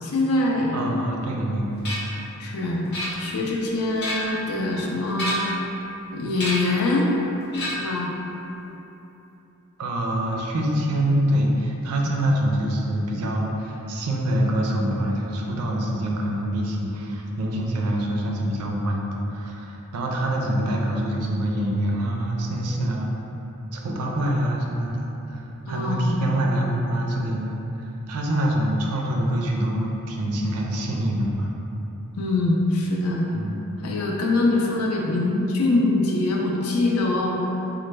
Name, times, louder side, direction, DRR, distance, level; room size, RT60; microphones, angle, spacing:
voice 1, 0.0-0.9 2.4-2.9 3.2-5.5 6.1-7.1 7.7-8.1 25.7-26.2 32.2-33.3 33.8-37.5, left 2 dB, 75° left, -2 dB, 0.5 m, -23 dB
voice 2, 0.7-1.8 9.8-23.1 23.7-31.5 33.3-33.6, right 1 dB, 90° right, -1 dB, 0.4 m, -25 dB
sound 1, 1.8-2.2 2.9-3.5 3.9-4.4 5.1-5.6 6.4-6.8 7.5-8.0, left 1 dB, 50° left, 0.8 m, -30 dB
3.2 x 2.0 x 3.1 m, 3.0 s
head